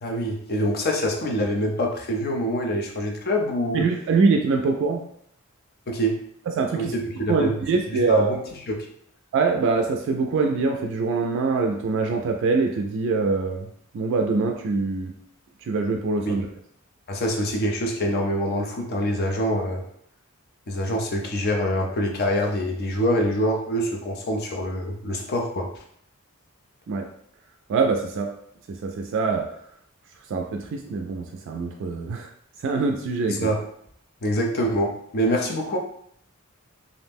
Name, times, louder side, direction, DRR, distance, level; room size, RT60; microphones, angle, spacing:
voice 1, 0.0-3.8 5.9-6.1 6.7-7.6 7.9-8.4 8.7-8.9 16.2-16.4 17.1-19.8 20.7-25.7 33.3-33.6 34.2-35.8, equal, 45° left, 1 dB, 0.5 m, -25 dB
voice 2, 3.7-5.0 6.6-6.9 7.3-8.3 9.3-13.7 13.9-15.1 15.6-16.5 26.9-27.1 27.7-28.3 28.7-29.5 30.3-32.3 32.6-33.5, right 4 dB, 60° right, 3 dB, 0.3 m, -24 dB
2.5 x 2.0 x 3.4 m, 0.67 s
head